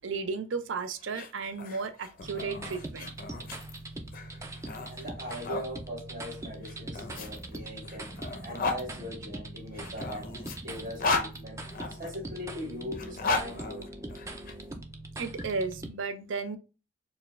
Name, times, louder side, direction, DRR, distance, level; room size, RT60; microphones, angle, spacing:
voice 1, 0.0-3.1 15.2-16.6, right 4 dB, 70° right, 0.5 m, -34 dB
sound 1, 1.0-5.7 6.6-8.8 9.7-12.1 12.9-14.5, left 3 dB, 45° left, 0.6 m, -35 dB
sound 2, 2.2-15.9, right 2 dB, 15° right, 0.4 m, -42 dB
voice 2, 4.9-8.2 8.4-14.0, equal, 45° right, 1.8 m, -41 dB
4.5 x 2.3 x 3.1 m
head